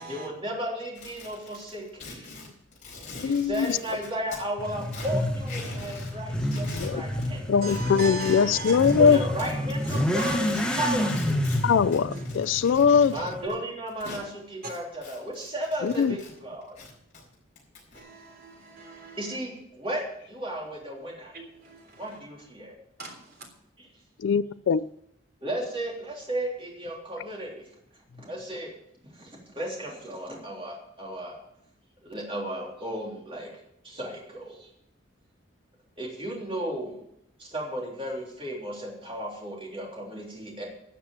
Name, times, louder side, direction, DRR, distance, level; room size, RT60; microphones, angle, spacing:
voice 1, 0.1-2.3 3.2-7.5 8.8-11.2 13.1-16.8 19.2-21.4 22.0-22.8 23.8-23.9 25.4-27.7 28.2-28.7 29.1-31.4 32.0-33.5 33.8-34.7 36.0-37.0 37.4-40.6, right 1 dB, 25° right, 3.5 m, -34 dB
sound 1, 1.0-4.4 4.8-6.1 6.4-7.3 7.7-14.2 14.7-16.3 16.6-18.0, left 2 dB, 35° left, 6.6 m, -42 dB
voice 2, 3.2-3.8 6.8-7.0 7.5-9.2 11.6-13.1 15.8-16.1 24.2-24.9, left 6 dB, 70° left, 0.3 m, -21 dB
Motorcycle / Accelerating revving vroom, 4.6-13.5, equal, 5° left, 1.1 m, -29 dB
voice 3, 7.6-9.0 9.8-10.3 10.9-11.0 12.1-12.2 17.9-19.4 21.3-22.2 23.0-23.5, right 1 dB, 50° right, 3.3 m, -39 dB
13.0 x 7.3 x 7.3 m
head